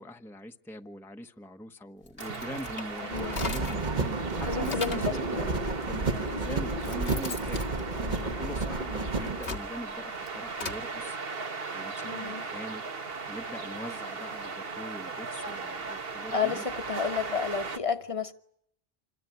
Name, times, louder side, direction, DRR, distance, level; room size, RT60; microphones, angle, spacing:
voice 1, 0.0-5.5 5.8-7.7 8.2-11.2 11.7-12.8 13.3-16.7, left 1 dB, ahead, 1.1 m, -42 dB
sound 1, 2.0-3.9 4.3-5.2 6.0-6.1 6.6-8.7 9.2-10.8, left 3 dB, 70° left, 2.1 m, -39 dB
sound 2, 2.2-17.8, right 4 dB, 65° right, 1.5 m, -38 dB
voice 2, 3.0-3.4 4.5-5.5 8.0-8.4 12.0-12.4 16.3-18.3, left 6 dB, 30° left, 1.4 m, -32 dB
sound 3, 3.1-9.4, right 3 dB, 45° right, 1.4 m, -31 dB
27.5 x 22.0 x 9.4 m
omnidirectional pair, 1.1 m